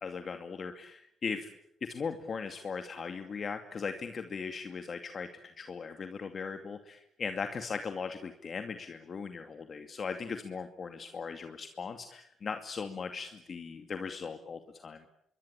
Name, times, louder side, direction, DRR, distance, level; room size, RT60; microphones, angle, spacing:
voice 1, 0.0-1.5 1.8-5.3 5.6-15.0, left 5 dB, 45° left, 6 dB, 2.4 m, -38 dB
27.5 x 23.5 x 9.0 m, 0.75 s
cardioid pair, 90°, 0 cm